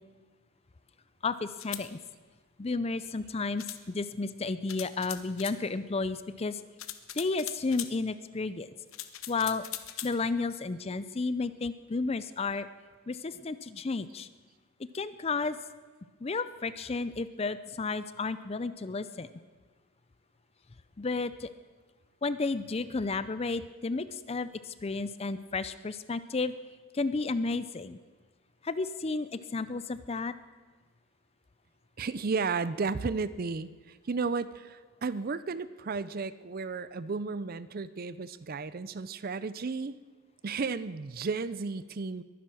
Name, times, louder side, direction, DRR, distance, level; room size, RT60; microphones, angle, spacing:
voice 1, 1.2-2.0 2.6-6.6 7.1-8.7 9.3-9.6 10.0-12.7 13.1-14.3 14.8-15.6 16.2-19.3 21.0-21.5 22.2-26.5 26.9-28.0 28.6-30.3, left 3 dB, 30° left, 14 dB, 0.4 m, -32 dB
sound 1, 1.5-1.9 3.6-3.8 4.7-5.6 6.8-7.9 8.9-10.1, left 13 dB, 70° left, 0.9 m, -40 dB
voice 2, 32.0-39.9 40.4-42.2, right 4 dB, 45° right, 16 dB, 0.5 m, -33 dB
22.0 x 10.0 x 6.3 m, 1.4 s
head